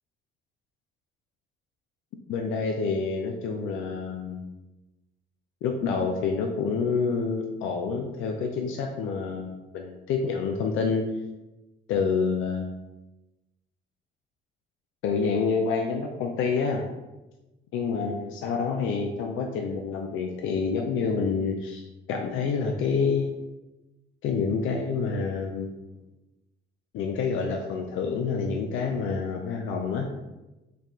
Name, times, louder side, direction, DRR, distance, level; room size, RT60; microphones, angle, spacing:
voice 1, 2.3-4.5 5.6-11.1 11.9-12.7 15.0-16.9 17.7-23.4 24.2-25.7 26.9-30.1, left 5 dB, 85° left, 2 dB, 0.4 m, -28 dB
4.6 x 2.3 x 3.6 m, 1.0 s
cardioid pair, 90°, 20 cm